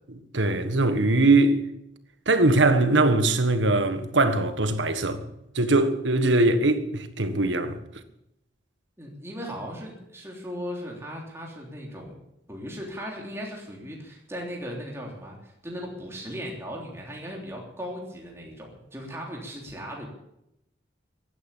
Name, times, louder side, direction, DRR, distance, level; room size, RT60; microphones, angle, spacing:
voice 1, 0.1-1.6 2.3-5.2 5.5-7.8, right 2 dB, 90° right, 1.6 m, -21 dB
voice 2, 9.0-12.2 12.5-20.1, equal, 15° right, 3.3 m, -37 dB
15.0 x 11.0 x 8.4 m
head